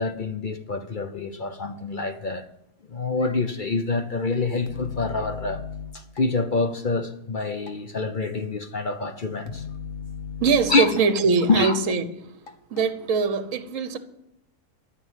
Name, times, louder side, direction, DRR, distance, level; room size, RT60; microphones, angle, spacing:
voice 1, 0.0-2.4 2.9-5.6 5.9-9.6 10.7-10.9 11.5-11.8, left 3 dB, 40° left, 0.8 m, -26 dB
sound 1, 4.7-6.2 7.7-7.8 9.5-11.0 11.6-12.0 12.5-12.9, left 6 dB, 60° left, 1.5 m, -37 dB
voice 2, 10.4-12.3 12.7-14.0, right 5 dB, 60° right, 1.3 m, -22 dB
13.0 x 6.5 x 9.1 m
omnidirectional pair, 1.6 m